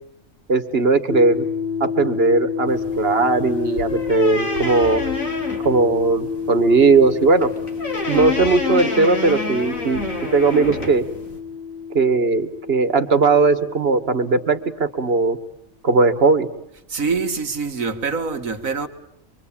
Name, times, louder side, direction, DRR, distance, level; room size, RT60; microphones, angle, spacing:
voice 1, 0.5-1.5 1.8-5.0 5.7-7.5 8.1-10.0 10.3-11.1 11.9-15.4 15.8-16.5, right 3 dB, 50° right, 1.8 m, -18 dB
sound 1, 1.1-15.0, left 6 dB, 35° left, 2.9 m, -29 dB
sound 2, 2.7-11.4, left 3 dB, 75° left, 4.1 m, -29 dB
voice 2, 16.9-18.9, right 4 dB, 80° right, 2.1 m, -25 dB
25.5 x 24.5 x 8.7 m
omnidirectional pair, 1.4 m